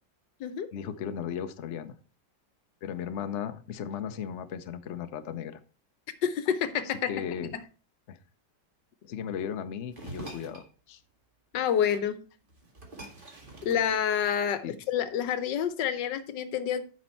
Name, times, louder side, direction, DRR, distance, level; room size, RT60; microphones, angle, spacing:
voice 1, 0.7-2.0 2.8-5.6 7.1-7.5 8.1-8.2 9.0-11.0 14.6-14.7, left 8 dB, 55° left, 9 dB, 0.9 m, -36 dB
voice 2, 6.2-7.2 11.5-12.2 13.6-16.8, left 8 dB, 85° left, 13 dB, 1.5 m, -28 dB
sound 1, 9.9-10.7 12.1-12.2 12.5-14.6, right 2 dB, 30° right, 2.1 m, -45 dB
9.6 x 6.3 x 4.4 m, 0.37 s
omnidirectional pair, 1.9 m